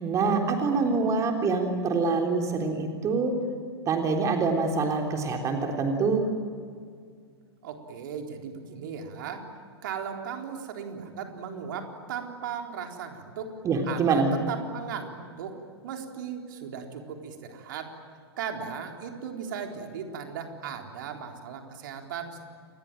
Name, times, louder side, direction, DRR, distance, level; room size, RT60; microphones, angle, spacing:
voice 1, 0.0-3.3 3.9-6.3 13.6-14.3, right 4 dB, 25° right, 3 dB, 3.5 m, -25 dB
voice 2, 7.6-9.5 9.8-13.5 13.9-15.6 15.8-17.9 18.4-22.5, right 7 dB, 50° right, 3 dB, 3.9 m, -37 dB
29.5 x 21.5 x 9.1 m, 2.1 s
figure-of-eight pair, 100°, 14 cm